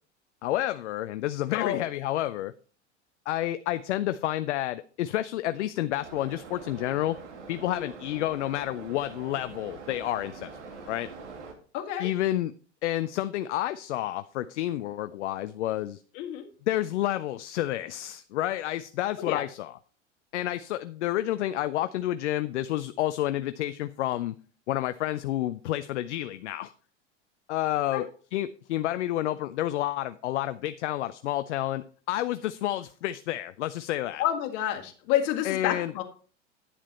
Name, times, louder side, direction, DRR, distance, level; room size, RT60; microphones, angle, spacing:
voice 1, 0.4-2.5 3.3-7.2 7.5-11.1 12.0-12.5 12.8-16.0 16.7-19.7 20.3-24.4 24.7-26.7 27.5-34.2 35.4-35.9, left 14 dB, 70° left, 13 dB, 0.6 m, -30 dB
voice 2, 1.5-1.9 7.7-7.9 11.7-12.1 16.1-16.5 19.2-19.4 27.9-28.1 34.2-36.0, left 11 dB, 55° left, 4 dB, 2.0 m, -29 dB
sound 1, 6.0-11.5, right 4 dB, 70° right, 2.4 m, -44 dB
10.0 x 7.3 x 4.2 m, 0.40 s
hypercardioid pair, 90°, 36 cm